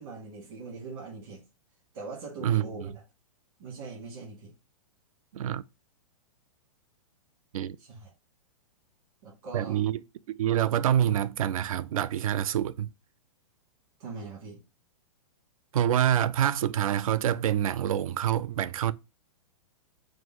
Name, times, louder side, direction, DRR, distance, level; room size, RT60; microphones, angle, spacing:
voice 1, 0.0-1.4 1.9-3.0 3.6-4.5 7.8-8.1 9.2-9.8 14.0-14.6, right 4 dB, 40° right, 1.7 m, -41 dB
voice 2, 2.4-2.9 5.3-5.6 7.5-7.8 9.5-10.0 10.3-12.9 15.7-18.9, right 10 dB, 70° right, 0.4 m, -26 dB
4.9 x 2.0 x 3.8 m
hypercardioid pair, 175°, 18 cm